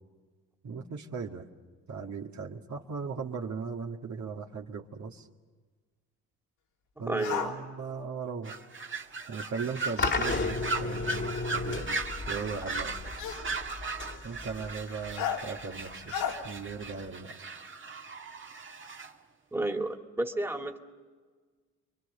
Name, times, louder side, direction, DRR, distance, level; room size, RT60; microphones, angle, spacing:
voice 1, 0.6-1.4 1.9-5.3 7.0-8.5 9.3-12.9 14.2-16.1 16.4-17.3, right 5 dB, 50° right, 2 dB, 2.0 m, -38 dB
voice 2, 7.0-7.6 19.5-20.8, right 2 dB, 5° right, 4 dB, 2.3 m, -31 dB
sound 1, 7.2-7.5 10.0-10.3 11.5-11.6 13.2-13.5 15.2-15.4 16.1-16.4, left 8 dB, 80° left, 3.5 m, -32 dB
sound 2, 8.4-19.1, right 3 dB, 35° right, 1.8 m, -38 dB
sound 3, 10.0-17.1, left 3 dB, 30° left, 2.1 m, -35 dB
28.5 x 23.0 x 6.8 m, 1.5 s
supercardioid pair, 60°, 36 cm